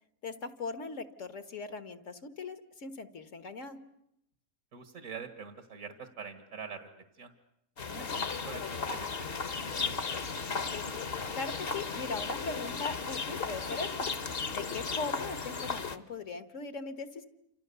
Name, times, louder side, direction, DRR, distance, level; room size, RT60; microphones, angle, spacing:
voice 1, 0.2-3.8 11.3-14.1 14.5-17.2, left 4 dB, 65° left, 10 dB, 1.8 m, -39 dB
voice 2, 4.7-6.9 7.1-7.3 7.9-9.1 9.4-10.6, right 6 dB, 75° right, 8 dB, 2.0 m, -45 dB
sound 1, 7.8-16.0, left 5 dB, 45° left, 1.3 m, -35 dB
28.5 x 27.0 x 6.9 m, 0.82 s
omnidirectional pair, 1.4 m